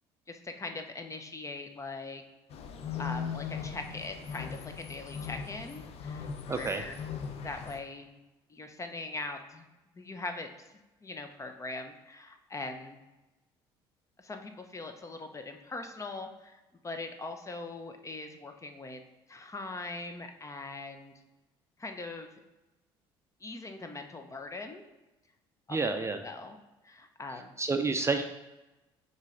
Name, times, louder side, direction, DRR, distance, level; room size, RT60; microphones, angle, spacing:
voice 1, 0.3-2.2 3.0-7.0 7.4-8.1 8.5-9.6 10.0-10.7 11.0-13.0 14.2-19.0 19.3-21.1 21.8-22.4 23.4-24.8 25.7-25.9 26.2-26.6 26.8-27.5, left 3 dB, 25° left, 6 dB, 0.8 m, -41 dB
sound 1, 2.5-7.8, left 7 dB, 55° left, 0.7 m, -39 dB
voice 2, 6.5-6.8 25.7-26.2 27.6-28.2, right 3 dB, 20° right, 6 dB, 0.5 m, -29 dB
5.2 x 4.1 x 5.1 m, 1.1 s
hypercardioid pair, 65°, 12 cm